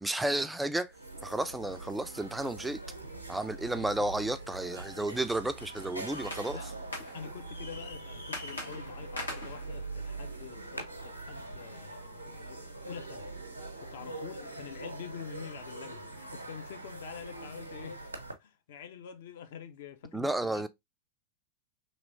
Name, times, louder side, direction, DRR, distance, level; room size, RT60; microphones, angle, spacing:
voice 1, 0.0-0.9 1.2-2.8 3.3-6.6 20.1-20.7, right 1 dB, 5° right, 0.3 m, -32 dB
sound 1, 0.6-0.7 0.9-18.3, right 2 dB, 85° right, 0.6 m, -43 dB
voice 2, 3.7-4.1 6.5-6.7 7.1-13.3 13.8-18.1 18.4-20.7, left 7 dB, 55° left, 0.5 m, -46 dB
sound 2, 5.6-11.0, left 1 dB, 85° left, 1.1 m, -44 dB
3.1 x 2.9 x 2.5 m
figure-of-eight pair, 90°, 0 cm